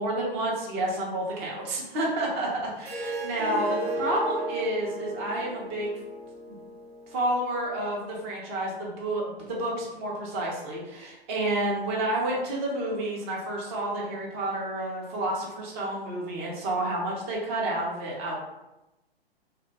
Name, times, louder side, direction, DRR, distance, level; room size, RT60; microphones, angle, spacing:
voice 1, 0.0-5.9 6.5-6.6 7.1-18.4, right 1 dB, 15° right, -3 dB, 0.4 m, -30 dB
Harp, 2.8-7.9, right 1 dB, 80° right, 1.1 m, -35 dB
2.6 x 2.1 x 3.8 m, 0.95 s
figure-of-eight pair, 120°, 30 cm